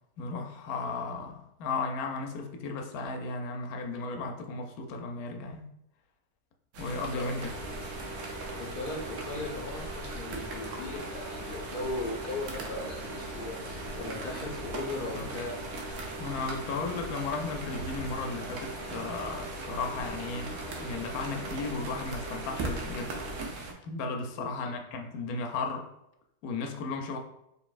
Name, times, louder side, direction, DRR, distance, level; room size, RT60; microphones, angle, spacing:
voice 1, 0.2-5.6 6.8-7.5 15.1-15.3 16.2-23.2 23.8-25.9 26.4-27.2, left 3 dB, 80° left, 4 dB, 1.1 m, -35 dB
sound 1, 6.7-23.7, right 3 dB, 80° right, 1.2 m, -41 dB
voice 2, 7.1-7.5 8.6-15.6 24.3-24.7, left 2 dB, 45° left, -1 dB, 0.9 m, -38 dB
sound 2, 7.4-23.4, right 1 dB, 50° right, 1.3 m, -41 dB
4.0 x 3.4 x 2.4 m, 0.83 s
omnidirectional pair, 1.6 m